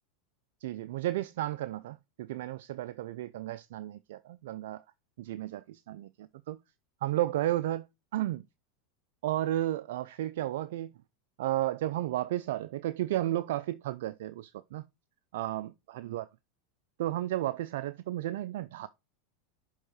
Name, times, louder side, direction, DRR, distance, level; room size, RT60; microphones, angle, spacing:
voice 1, 0.6-4.8 5.2-6.6 7.0-7.9 8.1-8.4 9.2-10.9 11.4-14.9 15.3-16.3 17.0-18.9, right 14 dB, 75° right, 0.4 m, -33 dB
6.4 x 3.6 x 6.2 m
hypercardioid pair, 105°, 0 cm